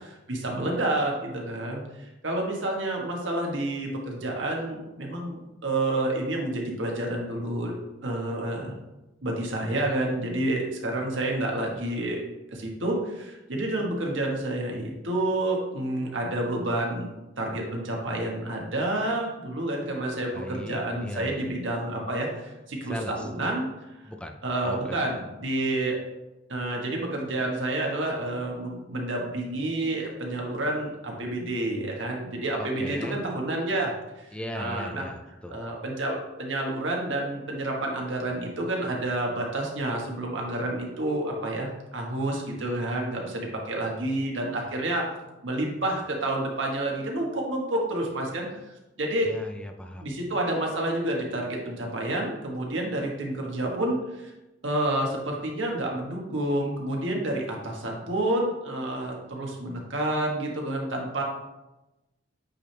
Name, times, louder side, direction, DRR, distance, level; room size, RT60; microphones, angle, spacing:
voice 1, 0.3-7.7 8.0-8.8 9.2-12.2 12.5-17.1 17.4-23.7 24.4-26.0 26.5-34.3 34.5-35.0 35.5-45.1 45.4-48.5 49.0-49.3 50.0-54.3 54.6-61.2, right 1 dB, 90° right, -1 dB, 1.3 m, -29 dB
voice 2, 20.3-21.4 22.9-23.3 24.0-24.4 24.6-25.0 32.6-33.2 34.3-35.6 49.2-50.1, left 1 dB, 5° left, 4 dB, 0.4 m, -37 dB
8.5 x 3.4 x 3.3 m, 1.0 s
head